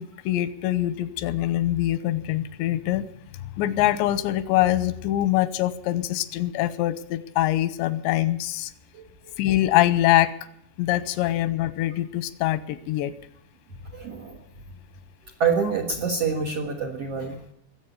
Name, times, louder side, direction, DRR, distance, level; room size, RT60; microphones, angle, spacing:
voice 1, 0.0-3.0 3.6-8.7 9.4-10.3 10.8-13.1, left 14 dB, 90° left, 15 dB, 3.1 m, -24 dB
voice 2, 14.0-14.3 15.4-17.4, right 5 dB, 55° right, 4 dB, 1.7 m, -26 dB
21.0 x 8.2 x 8.2 m, 0.71 s
omnidirectional pair, 5.0 m